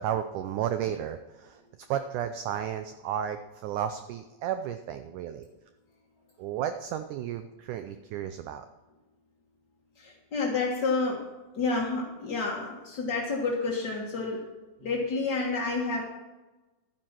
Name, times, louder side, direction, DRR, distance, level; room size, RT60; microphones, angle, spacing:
voice 1, 0.0-1.6 1.9-5.5 6.4-8.7, right 10 dB, 85° right, 9 dB, 1.7 m, -33 dB
voice 2, 10.0-11.2 11.5-14.4 14.8-16.0, left 3 dB, 55° left, -2 dB, 1.2 m, -29 dB
12.0 x 9.8 x 6.0 m, 1.1 s
omnidirectional pair, 4.2 m